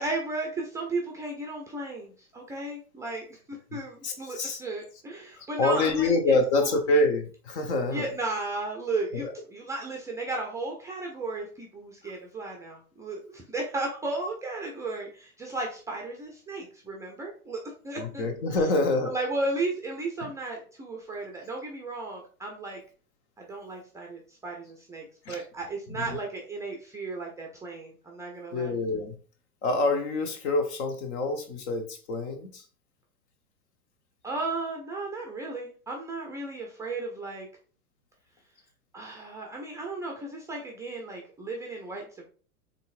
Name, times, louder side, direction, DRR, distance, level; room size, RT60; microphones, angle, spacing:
voice 1, 0.0-3.4 3.7-6.7 7.9-18.4 19.0-22.8 23.4-28.8 34.2-37.5 38.9-42.3, right 2 dB, 5° right, 0 dB, 0.5 m, -35 dB
voice 2, 4.0-4.6 5.4-8.1 9.1-9.3 18.0-19.1 25.2-25.4 25.9-26.2 28.5-29.1 29.6-32.6, left 2 dB, 45° left, 7 dB, 1.1 m, -26 dB
5.5 x 3.6 x 2.4 m, 0.41 s
figure-of-eight pair, 95°, 45 cm